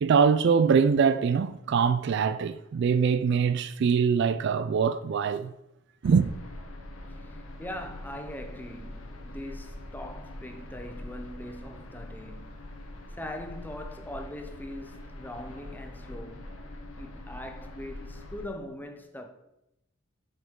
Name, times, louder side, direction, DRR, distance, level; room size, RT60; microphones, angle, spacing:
voice 1, 0.0-5.5 6.0-6.3, right 6 dB, 55° right, 0.3 m, -23 dB
sound 1, 6.0-18.5, left 1 dB, 80° left, 1.0 m, -43 dB
voice 2, 7.2-12.6 13.2-16.5 17.0-19.3, left 1 dB, 10° left, 0.6 m, -41 dB
7.8 x 5.5 x 3.7 m
head